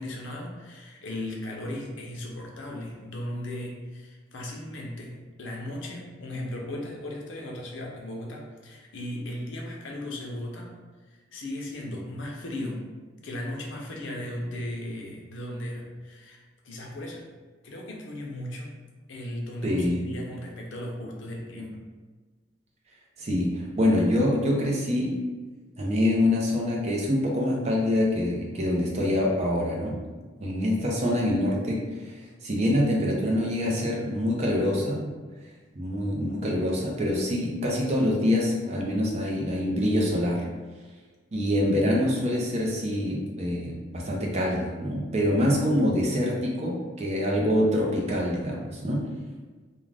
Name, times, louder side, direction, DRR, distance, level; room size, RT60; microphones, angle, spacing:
voice 1, 0.0-10.7 11.3-12.8 13.2-17.2 17.6-18.8 19.1-21.8, left 1 dB, 80° left, -1 dB, 0.6 m, -36 dB
voice 2, 19.6-20.0 23.2-25.2 25.8-30.0 30.4-32.1 32.4-35.1 35.8-40.4 41.3-49.1, left 1 dB, 35° right, -2 dB, 0.5 m, -25 dB
2.4 x 2.2 x 3.2 m, 1.4 s
head